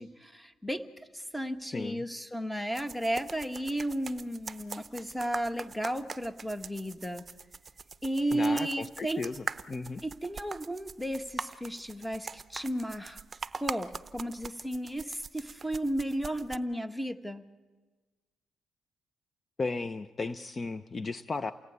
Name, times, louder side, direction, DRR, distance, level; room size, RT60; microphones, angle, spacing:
voice 1, 0.0-7.3 8.0-9.3 10.0-13.2 13.6-17.4, right 1 dB, 5° left, 9 dB, 1.6 m, -34 dB
voice 2, 1.7-2.0 8.3-10.0 19.6-21.5, left 3 dB, 35° left, 12 dB, 0.7 m, -35 dB
sound 1, 2.7-16.6, right 4 dB, 30° right, 0.8 m, -43 dB
29.0 x 18.0 x 9.6 m, 1.3 s
cardioid pair, 90°, 0 cm